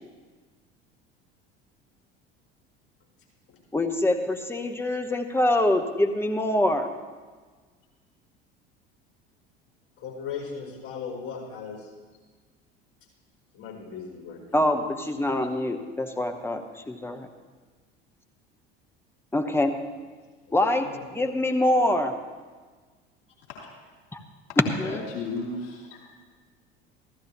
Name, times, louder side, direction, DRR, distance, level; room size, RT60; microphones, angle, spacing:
voice 1, 3.7-6.9 14.5-17.3 19.3-19.7 20.5-20.9 21.1-22.1 24.1-24.2 24.6-24.9, left 1 dB, 10° left, 6 dB, 1.0 m, -24 dB
voice 2, 10.0-11.9 13.5-14.9 15.2-15.3 20.5-21.1, left 6 dB, 45° left, -2 dB, 4.5 m, -38 dB
voice 3, 23.5-23.8 24.5-26.0, left 3 dB, 65° left, -4 dB, 3.0 m, -36 dB
14.5 x 13.5 x 3.0 m, 1.4 s
hypercardioid pair, 70°, 30 cm